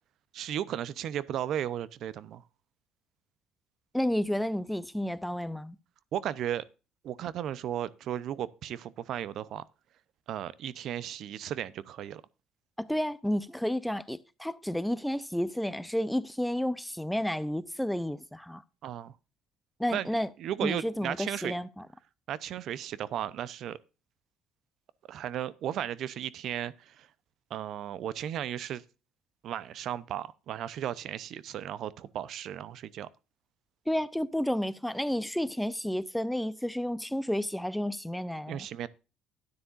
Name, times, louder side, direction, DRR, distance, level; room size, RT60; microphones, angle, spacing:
voice 1, 0.3-2.4 6.1-6.6 7.0-9.6 10.3-12.2 18.8-19.1 19.9-20.1 20.4-21.5 22.3-23.8 25.1-27.1 27.5-28.8 29.4-33.1 38.5-38.9, right 10 dB, 60° right, 0.7 m, -35 dB
voice 2, 3.9-5.8 12.8-18.6 19.8-20.3 20.6-21.9 33.9-38.7, equal, 5° left, 0.6 m, -31 dB
12.5 x 9.7 x 2.5 m
cardioid pair, 105°, 0 cm